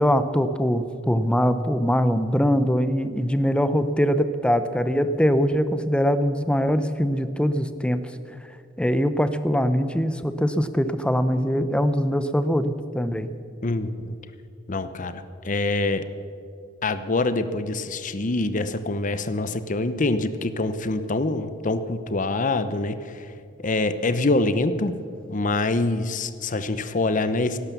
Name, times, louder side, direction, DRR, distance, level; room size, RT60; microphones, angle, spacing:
voice 1, 0.0-8.0 8.8-13.3, equal, 5° left, 11 dB, 0.7 m, -22 dB
voice 2, 13.6-14.1 14.7-16.1 16.8-23.2 23.6-25.0 25.3-27.6, left 2 dB, 45° left, 12 dB, 0.8 m, -25 dB
17.0 x 11.5 x 7.0 m, 2.4 s
head